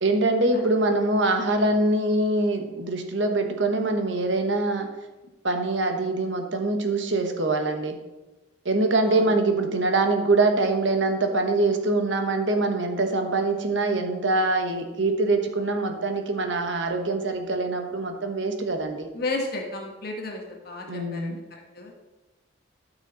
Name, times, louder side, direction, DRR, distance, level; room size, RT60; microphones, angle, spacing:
voice 1, 0.0-4.9 5.4-8.0 8.6-19.1 20.9-21.4, right 2 dB, 65° right, 5 dB, 1.2 m, -24 dB
voice 2, 19.1-21.9, left 2 dB, 50° left, 1 dB, 1.3 m, -33 dB
12.5 x 6.2 x 4.0 m, 1.1 s
head